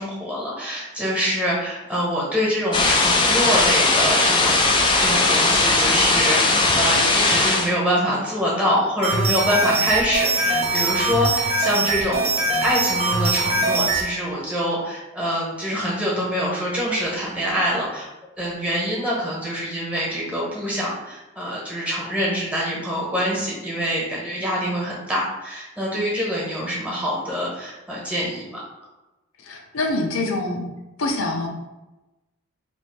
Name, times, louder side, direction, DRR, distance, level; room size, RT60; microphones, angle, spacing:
voice 1, 0.0-4.6 5.0-18.1 18.4-28.6, equal, 5° right, -5 dB, 1.0 m, -25 dB
sound 1, 2.7-7.7, left 3 dB, 25° left, 0.4 m, -18 dB
sound 2, 9.0-14.1, right 2 dB, 30° right, 0.5 m, -22 dB
voice 2, 29.4-30.6 31.0-31.5, left 2 dB, 85° left, 2 dB, 0.6 m, -25 dB
3.1 x 2.6 x 4.4 m, 1.0 s
head